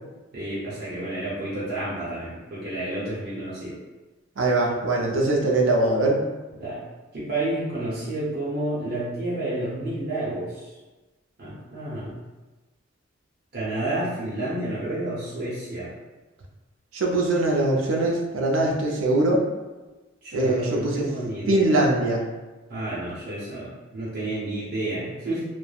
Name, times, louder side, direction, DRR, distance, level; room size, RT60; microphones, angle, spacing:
voice 1, 0.3-3.8 6.6-6.8 7.1-10.8 11.4-12.2 13.5-15.9 20.2-21.7 22.7-25.4, right 1 dB, 55° right, -9 dB, 0.8 m, -30 dB
voice 2, 4.4-6.2 16.9-19.4 20.3-21.1 21.5-22.2, right 2 dB, 90° right, 0 dB, 0.5 m, -22 dB
3.1 x 2.1 x 2.3 m, 1.2 s
head